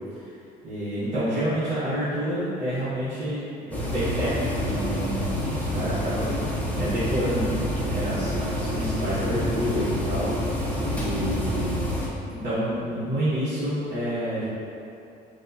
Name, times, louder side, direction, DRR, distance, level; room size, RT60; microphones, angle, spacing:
voice 1, 0.6-5.2 5.6-6.3 6.7-10.3 10.9-11.8 12.3-14.4, right 1 dB, 50° right, -14 dB, 1.1 m, -28 dB
sound 1, 3.7-12.1, left 1 dB, 10° left, 0.6 m, -28 dB
4.8 x 2.1 x 2.6 m, 2.7 s
cardioid pair, 110°, 17 cm